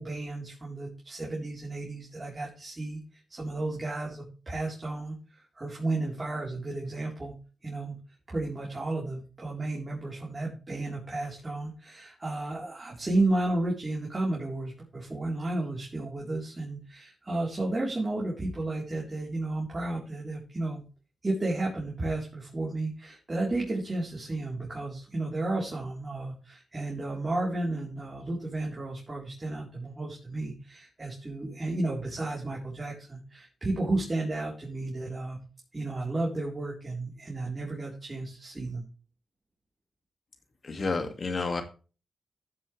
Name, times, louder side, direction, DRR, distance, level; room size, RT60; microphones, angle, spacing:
voice 1, 0.0-3.0 3.3-7.3 7.6-7.9 8.3-20.8 21.2-35.4 35.7-38.8, right 2 dB, 35° right, -4 dB, 3.9 m, -32 dB
voice 2, 40.6-41.6, left 3 dB, 55° left, 7 dB, 2.2 m, -30 dB
14.0 x 7.3 x 3.4 m, 0.35 s
supercardioid pair, 45°, 0 cm